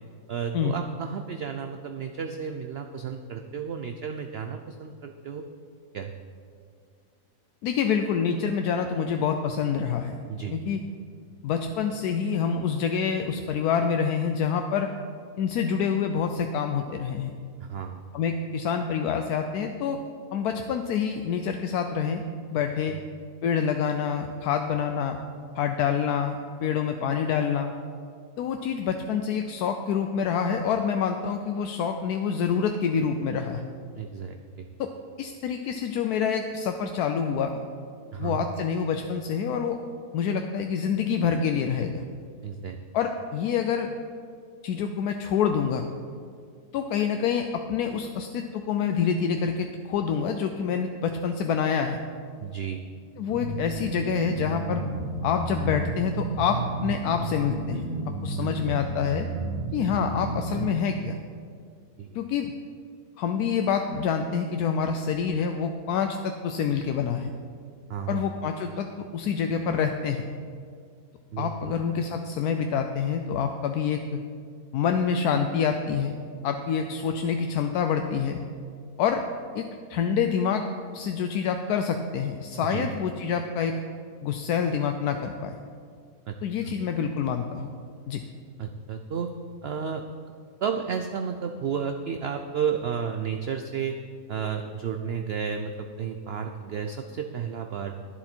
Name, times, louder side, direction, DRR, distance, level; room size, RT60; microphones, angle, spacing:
voice 1, 0.3-5.4 5.9-6.1 10.3-10.6 17.6-18.0 22.9-23.0 33.9-34.7 38.1-38.4 42.4-42.8 52.4-52.8 59.8-59.9 62.0-62.2 67.9-68.2 71.3-71.7 82.6-82.9 86.3-86.4 86.7-86.8 88.6-89.3 89.6-90.1 90.6-94.0 94.3-98.0, right 7 dB, 65° right, 5 dB, 0.6 m, -32 dB
voice 2, 7.6-10.2 10.5-10.8 11.4-14.9 15.4-17.3 18.1-20.0 20.3-22.2 22.5-22.9 23.4-25.2 25.5-26.4 26.6-27.7 28.4-33.6 34.8-34.9 35.2-37.6 38.2-39.8 40.1-42.0 42.9-43.9 44.6-45.8 46.7-52.0 53.2-54.8 55.2-57.9 58.2-59.3 59.7-61.1 62.1-62.5 63.2-67.3 68.1-68.9 69.1-70.2 71.4-74.0 74.7-76.2 76.4-78.4 79.0-79.2 79.5-80.6 80.9-83.8 84.2-85.5 86.4-87.7 88.1-88.2, left 7 dB, 80° left, 6 dB, 1.1 m, -27 dB
sound 1, 53.3-60.7, right 3 dB, 40° right, 1.9 m, -32 dB
11.5 x 11.0 x 4.4 m, 2.2 s
omnidirectional pair, 1.7 m